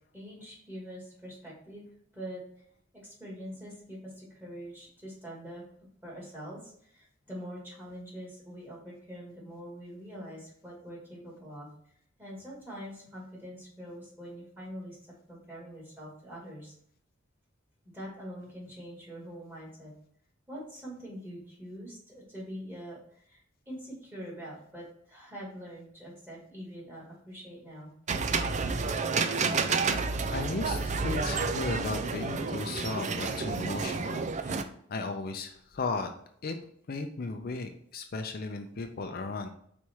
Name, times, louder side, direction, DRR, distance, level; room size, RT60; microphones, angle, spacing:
voice 1, 0.1-1.8 2.1-2.6 2.9-5.6 6.0-11.7 12.2-15.0 15.3-16.8 17.9-19.9 20.5-27.9, equal, 10° right, -5 dB, 2.3 m, -44 dB
sound 1, 28.1-34.6, right 4 dB, 40° right, 0.4 m, -30 dB
voice 2, 30.3-34.6 34.9-36.1 36.4-36.6 36.9-39.5, left 3 dB, 50° left, 5 dB, 0.5 m, -35 dB
4.8 x 4.2 x 4.6 m, 0.65 s
head